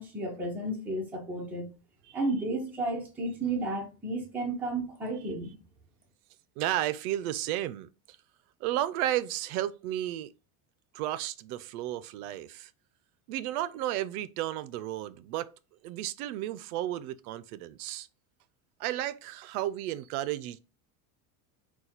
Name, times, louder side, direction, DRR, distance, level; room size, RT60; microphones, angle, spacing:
voice 1, 0.0-1.7 2.1-5.5, right 2 dB, 5° right, 0.7 m, -32 dB
voice 2, 6.6-7.9 8.6-10.3 10.9-12.7 13.3-15.5 15.8-18.1 18.8-20.6, right 13 dB, 80° right, 0.5 m, -33 dB
4.0 x 2.3 x 4.3 m
cardioid pair, 165°, 43 cm